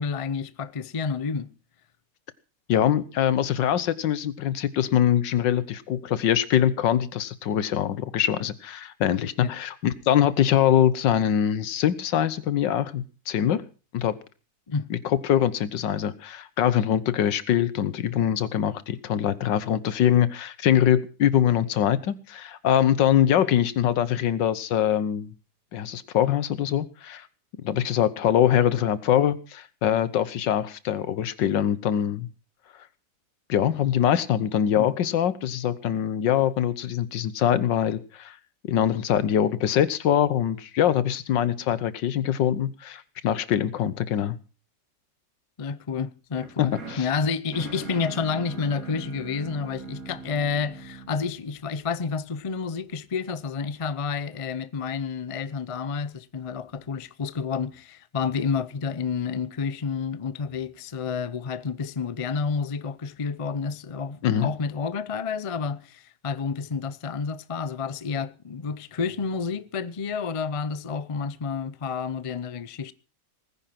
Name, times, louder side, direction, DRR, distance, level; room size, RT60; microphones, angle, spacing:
voice 1, 0.0-1.5 8.4-8.5 9.4-9.5 14.7-14.9 34.8-34.9 45.6-72.9, left 5 dB, 60° left, 0.3 m, -30 dB
voice 2, 2.7-13.6 13.9-14.2 14.9-25.3 25.7-27.3 27.6-32.3 33.5-38.4 38.7-44.4 46.6-47.1 64.2-64.5, left 10 dB, 85° left, 1.7 m, -23 dB
sound 1, 46.3-52.4, right 4 dB, 50° right, 2.8 m, -42 dB
19.5 x 10.0 x 5.9 m
omnidirectional pair, 1.9 m